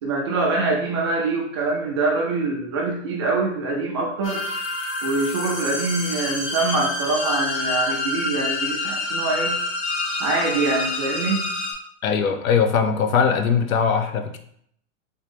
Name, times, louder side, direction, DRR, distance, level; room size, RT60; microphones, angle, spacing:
voice 1, 0.0-4.4 5.0-9.6 10.2-11.5, right 3 dB, 25° right, -1 dB, 0.3 m, -24 dB
sound 1, 4.2-11.7, left 2 dB, 45° left, 1.5 m, -27 dB
voice 2, 12.0-14.4, left 6 dB, 85° left, 6 dB, 0.8 m, -20 dB
3.5 x 3.0 x 3.4 m, 0.69 s
hypercardioid pair, 145°, 40 cm